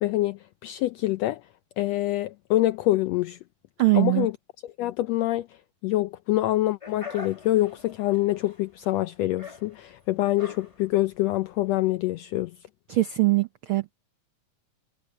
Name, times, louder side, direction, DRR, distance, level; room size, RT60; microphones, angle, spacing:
voice 1, 0.0-1.4 1.8-3.4 3.9-4.3 4.6-5.5 5.8-12.5, left 16 dB, 85° left, 1.5 m, -25 dB
voice 2, 3.8-4.3 12.9-13.9, right 19 dB, 85° right, 1.1 m, -22 dB
sound 1, 6.8-11.9, left 3 dB, 20° left, 1.0 m, -44 dB
omnidirectional pair, 3.5 m